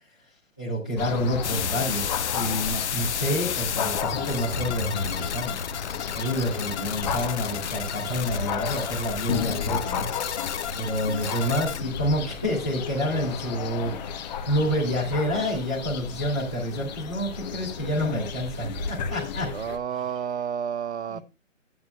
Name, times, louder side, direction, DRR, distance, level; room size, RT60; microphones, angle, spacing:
voice 1, 0.6-5.5 6.1-10.1 10.7-13.9 14.4-19.5 21.1-21.2, equal, 5° left, 0.4 m, -28 dB
sound 1, 1.0-19.8, left 6 dB, 35° left, 1.2 m, -33 dB
sound 2, 1.4-11.8, left 9 dB, 60° left, 0.7 m, -32 dB
voice 2, 19.5-21.2, right 8 dB, 55° right, 0.8 m, -30 dB
10.5 x 9.3 x 2.4 m
hypercardioid pair, 145°, 39 cm